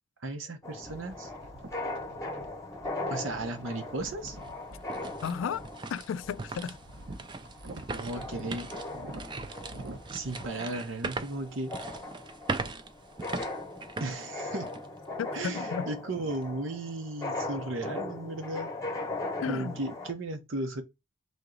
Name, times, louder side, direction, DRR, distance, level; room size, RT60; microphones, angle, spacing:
voice 1, 0.2-1.3 3.1-4.4 7.9-8.7 10.1-11.7 14.0-14.7 15.3-18.7 19.4-20.8, right 2 dB, 85° right, 0.9 m, -35 dB
sound 1, 0.6-20.1, left 2 dB, 15° left, 0.8 m, -39 dB
sound 2, 0.8-10.4, right 2 dB, 65° right, 0.7 m, -47 dB
sound 3, 3.5-3.6 4.1-15.0 15.4-15.5 16.1-16.4, right 3 dB, 25° right, 0.3 m, -40 dB
voice 2, 5.2-5.6 5.9-6.8 15.2-15.9 19.4-19.8, left 7 dB, 80° left, 0.3 m, -33 dB
3.7 x 2.9 x 3.8 m
head